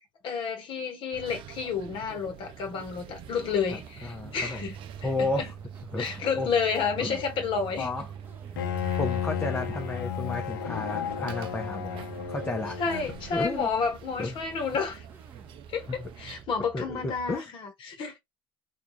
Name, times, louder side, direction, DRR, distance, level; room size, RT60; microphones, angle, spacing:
voice 1, 0.2-5.5 5.9-7.9 12.8-15.0 15.7-18.2, left 5 dB, 50° left, 0.8 m, -30 dB
sound 1, 1.1-16.4, right 8 dB, 55° right, 0.4 m, -44 dB
sound 2, 2.9-17.4, right 6 dB, 20° right, 0.8 m, -51 dB
voice 2, 3.7-4.6 5.0-5.5 5.9-6.1 6.4-6.5 7.0-7.2 7.8-8.1 9.0-12.8 13.3-13.7 14.2-14.4 15.9-16.1 16.7-17.5, left 2 dB, 15° left, 0.6 m, -32 dB
Bowed string instrument, 8.6-13.3, left 9 dB, 85° left, 0.5 m, -33 dB
2.3 x 2.2 x 3.1 m
hypercardioid pair, 70°, 11 cm